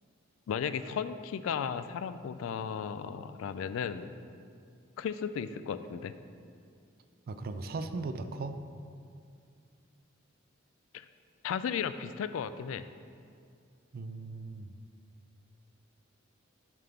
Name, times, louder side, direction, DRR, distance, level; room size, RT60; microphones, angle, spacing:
voice 1, 0.5-4.1 5.0-6.1 10.9-11.1 11.4-12.9, left 7 dB, 75° left, 13 dB, 0.3 m, -35 dB
voice 2, 7.3-8.6 13.9-14.7, right 3 dB, 50° right, 10 dB, 0.3 m, -38 dB
7.3 x 3.5 x 5.7 m, 2.3 s
head